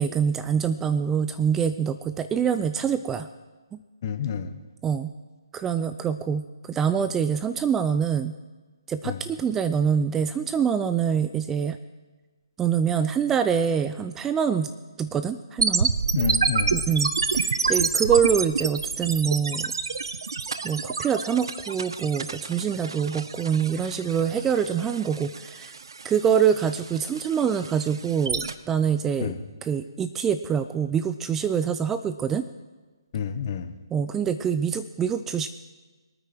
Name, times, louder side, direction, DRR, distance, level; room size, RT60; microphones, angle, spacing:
voice 1, 0.0-3.3 3.7-3.8 4.8-5.1 5.5-8.4 8.9-11.8 12.6-14.7 15.0-15.9 16.7-17.1 17.7-19.7 20.6-25.7 26.0-29.3 29.7-32.5 33.9-35.6, right 7 dB, 10° right, 11 dB, 0.4 m, -25 dB
voice 2, 4.0-4.5 9.0-9.2 16.1-16.8 29.2-29.4 33.1-33.7, left 7 dB, 40° left, 10 dB, 1.1 m, -29 dB
sound 1, 15.6-28.5, right 4 dB, 70° right, 0.8 m, -28 dB
24.0 x 9.3 x 4.5 m, 1.3 s
figure-of-eight pair, 145°, 3 cm